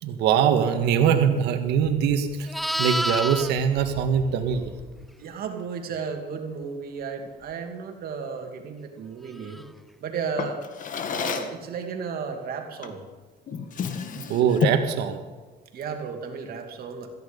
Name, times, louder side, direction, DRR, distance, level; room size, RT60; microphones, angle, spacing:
voice 1, 0.0-2.5 2.8-4.7 14.3-15.2, right 8 dB, 85° right, 7 dB, 1.9 m, -22 dB
Livestock farm animals working animals, 1.8-5.1 9.4-9.7, equal, ahead, 0.6 m, -31 dB
voice 2, 5.2-9.6 10.0-10.6 11.1-13.0 15.7-17.1, right 6 dB, 65° right, 4 dB, 2.8 m, -34 dB
Drawer open or close, 10.4-11.6 12.8-13.1 13.5-14.9, left 6 dB, 50° left, 1.7 m, -29 dB
16.5 x 14.5 x 5.5 m, 1.3 s
cardioid pair, 110°, 17 cm